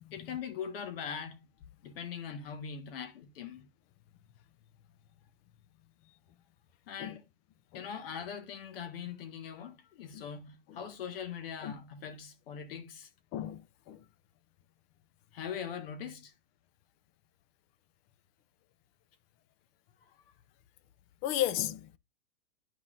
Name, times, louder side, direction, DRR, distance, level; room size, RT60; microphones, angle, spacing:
voice 1, 0.1-1.4 1.8-3.7 6.9-7.2 7.7-13.1 15.3-16.3 20.0-20.1, left 7 dB, 60° left, 1.5 m, -41 dB
voice 2, 21.2-22.0, left 12 dB, 20° left, 0.3 m, -33 dB
12.0 x 4.1 x 2.5 m
hypercardioid pair, 135°, 32 cm